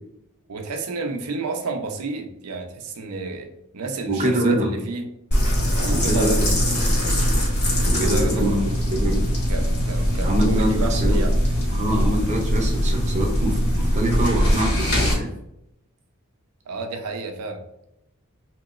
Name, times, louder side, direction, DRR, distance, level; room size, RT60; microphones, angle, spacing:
voice 1, 0.5-5.1 5.7-6.5 8.0-8.7 9.5-11.3 16.7-17.6, right 3 dB, 85° right, 4 dB, 0.5 m, -30 dB
voice 2, 4.1-4.7 5.9-6.5 7.9-8.6 8.9-9.2 10.2-11.2 11.7-15.3, right 1 dB, 30° right, 1 dB, 0.6 m, -24 dB
sound 1, 5.3-15.1, equal, 50° left, 1.2 m, -21 dB
3.0 x 2.8 x 2.4 m, 0.82 s
head